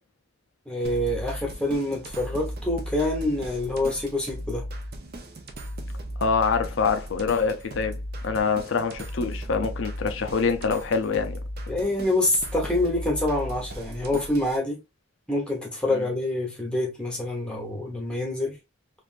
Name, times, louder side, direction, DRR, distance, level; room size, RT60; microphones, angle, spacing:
voice 1, 0.7-4.6 11.7-14.8 15.3-18.5, left 1 dB, 5° left, 1.0 m, -26 dB
sound 1, 0.8-14.6, equal, 50° right, 0.6 m, -36 dB
voice 2, 6.2-11.4 15.9-16.1, left 5 dB, 70° left, 0.5 m, -25 dB
3.4 x 2.5 x 2.5 m
head